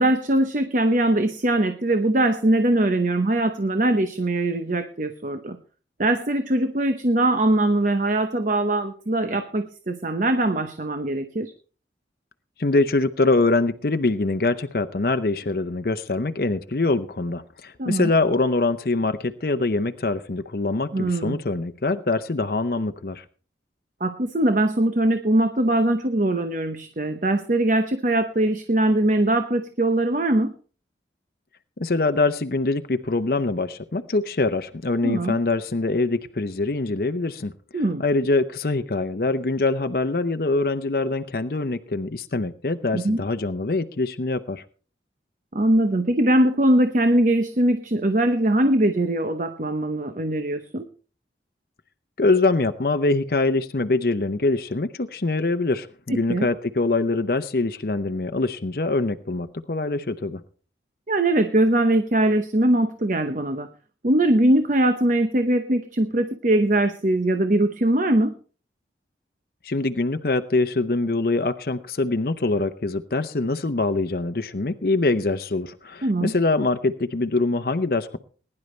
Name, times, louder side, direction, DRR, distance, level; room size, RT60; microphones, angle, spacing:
voice 1, 0.0-5.6 6.0-11.5 17.8-18.1 20.9-21.4 24.0-30.5 35.0-35.4 37.7-38.0 42.9-43.2 45.5-50.8 56.1-56.5 61.1-63.7 64.0-68.3 76.0-76.3, right 1 dB, 45° right, 8 dB, 0.9 m, -21 dB
voice 2, 12.6-23.2 31.8-37.5 38.0-44.6 52.2-60.4 69.6-78.2, left 3 dB, 55° left, 9 dB, 0.7 m, -24 dB
21.0 x 11.0 x 3.2 m, 0.40 s
head